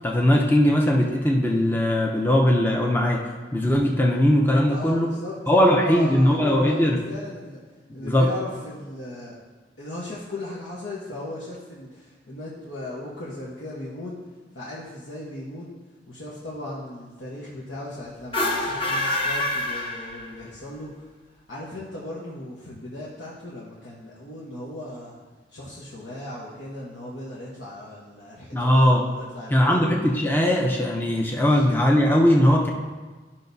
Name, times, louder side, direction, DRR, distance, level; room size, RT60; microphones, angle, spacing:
voice 1, 0.0-3.2 3.5-5.1 5.5-7.0 8.0-8.3 28.5-29.0 29.5-32.7, equal, 10° left, 0 dB, 0.6 m, -20 dB
voice 2, 4.7-7.6 7.9-9.4 9.8-14.2 14.5-15.7 16.1-21.1 21.5-25.1 25.5-29.9 31.5-31.6, left 1 dB, 80° left, -7 dB, 1.2 m, -37 dB
sound 1, 18.2-20.6, left 1 dB, 30° left, 0.9 m, -26 dB
12.0 x 5.7 x 2.7 m, 1.4 s
head